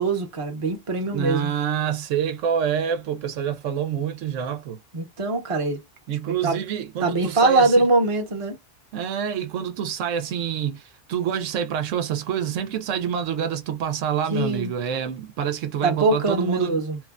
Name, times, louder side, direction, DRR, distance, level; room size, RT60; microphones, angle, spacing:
voice 1, 0.0-1.5 4.9-5.8 6.4-6.6 7.0-8.6 14.3-14.7 15.8-17.0, right 3 dB, 30° right, 0.8 m, -22 dB
voice 2, 1.1-4.8 6.1-7.8 8.9-16.8, right 8 dB, 85° right, 1.0 m, -27 dB
3.0 x 2.2 x 2.4 m
omnidirectional pair, 1.3 m